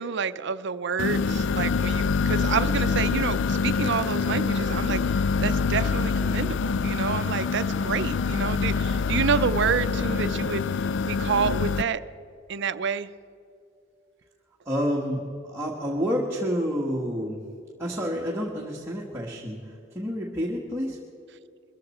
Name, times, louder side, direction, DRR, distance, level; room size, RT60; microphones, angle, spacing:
voice 1, 0.0-10.7 11.0-12.0 12.5-13.1, right 6 dB, 65° right, 13 dB, 0.5 m, -28 dB
sound 1, 1.0-11.8, left 5 dB, 65° left, 0.4 m, -25 dB
voice 2, 14.6-17.4 17.8-21.0, equal, 15° right, -3 dB, 1.5 m, -29 dB
22.0 x 14.5 x 4.3 m, 2.6 s
head